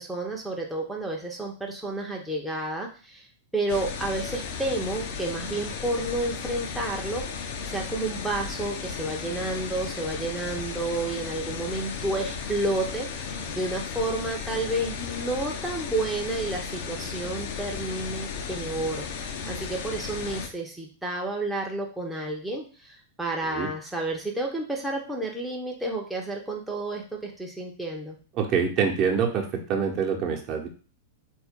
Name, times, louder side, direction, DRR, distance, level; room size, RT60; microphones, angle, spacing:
voice 1, 0.0-3.3 3.5-28.2, right 2 dB, 5° right, -2 dB, 0.7 m, -31 dB
sound 1, 3.7-20.5, left 6 dB, 50° left, 0.6 m, -35 dB
voice 2, 28.3-30.7, right 6 dB, 35° right, 1 dB, 1.0 m, -25 dB
4.1 x 2.6 x 3.6 m, 0.38 s
figure-of-eight pair, 95°, 0 cm